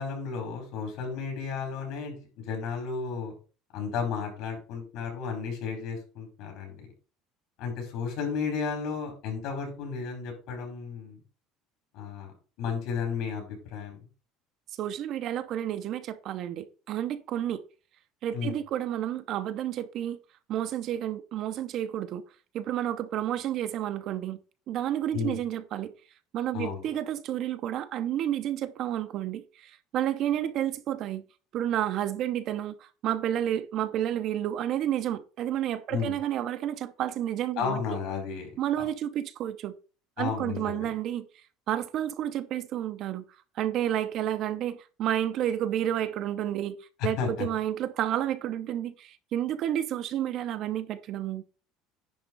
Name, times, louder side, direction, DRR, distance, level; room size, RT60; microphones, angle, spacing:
voice 1, 0.0-3.3 3.7-6.9 7.6-11.2 11.9-12.3 12.6-14.0 18.3-18.6 25.1-25.4 26.5-26.9 35.9-36.2 37.6-38.5 38.8-38.9 40.2-40.9 47.0-47.5, left 6 dB, 60° left, 4.4 m, -33 dB
voice 2, 14.8-17.6 18.2-20.2 20.5-22.2 22.5-24.4 24.7-25.9 26.3-31.2 31.5-37.8 38.6-39.7 40.2-41.3 41.7-43.2 43.6-46.8 47.0-51.4, right 11 dB, 45° right, 0.6 m, -30 dB
10.5 x 3.6 x 5.2 m
cardioid pair, 165°, 0 cm